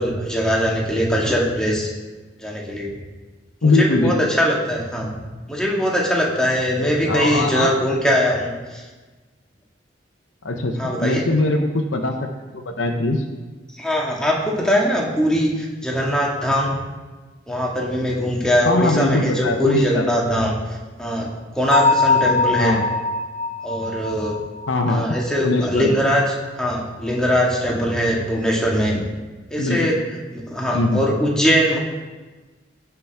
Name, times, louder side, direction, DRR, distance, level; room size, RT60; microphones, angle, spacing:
voice 1, 0.0-1.9 2.4-2.9 3.6-5.1 5.5-8.8 10.8-11.2 13.7-16.8 17.5-20.5 21.0-21.3 21.6-22.8 23.6-24.4 24.9-29.0 29.5-30.0 30.3-31.8, equal, 5° left, -3 dB, 1.8 m, -21 dB
voice 2, 3.6-4.1 7.1-7.7 10.4-12.1 12.5-13.2 18.7-20.1 22.6-22.9 24.7-26.0 29.6-30.0 30.7-31.0, left 2 dB, 85° left, 3 dB, 0.9 m, -21 dB
Bell, 21.7-25.4, left 3 dB, 35° left, 0.5 m, -22 dB
16.5 x 5.9 x 3.5 m, 1.3 s
head